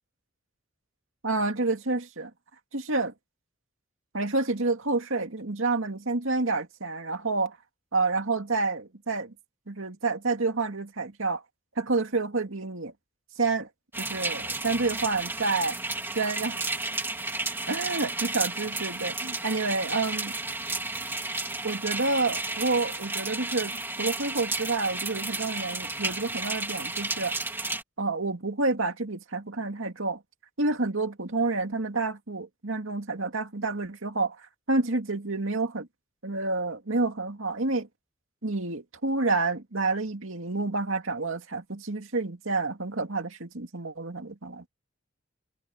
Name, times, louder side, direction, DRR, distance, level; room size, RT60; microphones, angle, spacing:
voice 1, 1.2-2.3 2.7-3.1 4.1-7.6 7.9-9.3 9.7-11.4 11.8-12.9 13.4-13.7 14.0-15.8 16.1-16.8 17.7-20.4 21.6-27.3 28.0-30.2 30.6-34.4 34.7-35.9 36.2-37.9 38.4-44.6, right 3 dB, 80° right, 2.3 m, -29 dB
sound 1, 13.9-27.8, right 2 dB, 10° right, 2.3 m, -32 dB
head